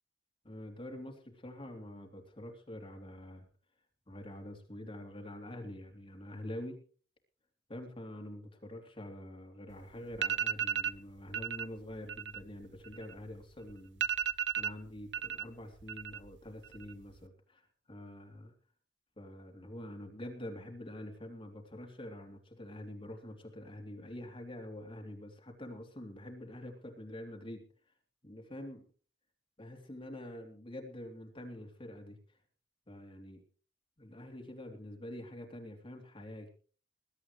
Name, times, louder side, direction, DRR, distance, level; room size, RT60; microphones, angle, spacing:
voice 1, 0.4-3.4 4.1-6.8 7.7-18.5 19.2-27.6 28.2-28.8 29.6-32.2 32.9-33.4 34.0-36.5, left 1 dB, 30° left, 2 dB, 3.0 m, -46 dB
sound 1, 9.7-9.8 10.1-11.0 11.3-11.7 12.0-13.4 13.7-13.8 14.0-15.4 15.7-16.3 16.6-17.2, right 8 dB, 85° right, 0.6 m, -34 dB
21.5 x 12.0 x 3.2 m, 0.40 s
head